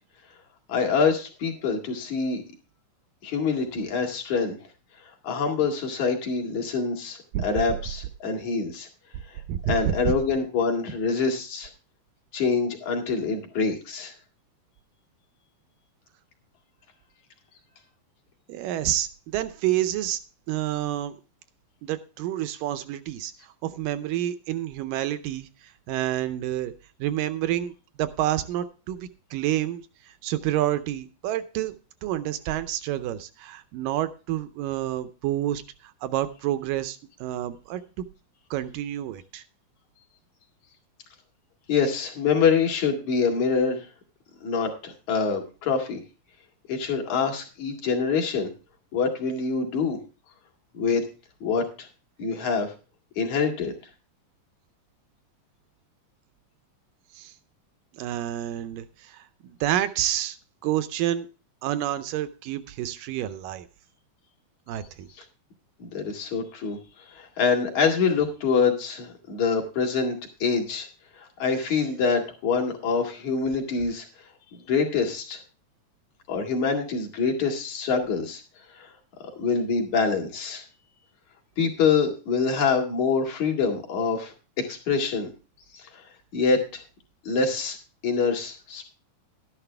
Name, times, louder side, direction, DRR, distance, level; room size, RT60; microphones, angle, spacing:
voice 1, 0.7-2.4 3.2-4.5 5.2-8.9 9.7-11.7 12.3-14.1 41.7-43.9 44.4-46.0 46.7-48.5 48.9-50.0 50.7-51.0 51.4-51.6 52.2-52.7 53.2-53.7 65.8-70.1 70.4-70.9 71.2-74.1 74.5-75.4 76.3-78.4 78.8-78.9 79.4-80.6 81.6-85.3 85.7-86.0 86.3-86.8 87.2-87.8 88.0-88.9, left 5 dB, 55° left, 3 dB, 3.2 m, -25 dB
voice 2, 9.5-10.1 18.5-20.2 20.5-21.2 21.8-23.3 23.6-25.5 25.9-26.7 27.0-37.8 38.5-39.4 57.1-57.3 57.9-60.4 60.6-61.3 61.6-63.7 64.7-65.1, right 12 dB, 80° right, 11 dB, 2.3 m, -29 dB
12.5 x 11.0 x 3.3 m, 0.33 s
omnidirectional pair, 4.1 m